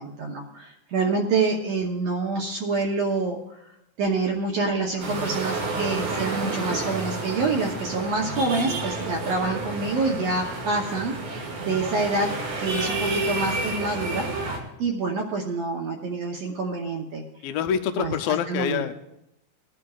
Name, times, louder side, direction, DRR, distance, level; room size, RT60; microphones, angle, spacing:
voice 1, 0.0-3.6 4.0-12.3 12.6-14.5 14.8-17.2 18.0-18.8, right 3 dB, 70° right, 0 dB, 1.6 m, -27 dB
sound 1, 5.0-14.6, right 3 dB, 90° right, 3.7 m, -30 dB
voice 2, 17.4-19.0, left 8 dB, 90° left, 8 dB, 2.4 m, -26 dB
20.0 x 11.5 x 2.4 m, 0.83 s
omnidirectional pair, 4.0 m